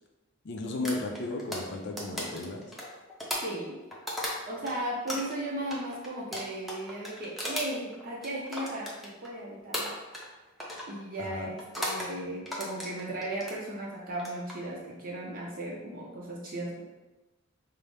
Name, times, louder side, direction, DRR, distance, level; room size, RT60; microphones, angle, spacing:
voice 1, 0.4-2.7 11.2-11.5, left 2 dB, 60° left, 3 dB, 0.5 m, -34 dB
sound 1, 0.8-4.7 5.1-9.3 9.7-10.3 10.6-10.9 11.6-12.1 12.4-13.6 14.1-14.5, equal, ahead, 0.7 m, -36 dB
voice 2, 3.4-3.8 4.5-9.9 10.9-16.8, right 1 dB, 45° right, -3 dB, 0.7 m, -36 dB
5.5 x 2.0 x 3.3 m, 1.1 s
head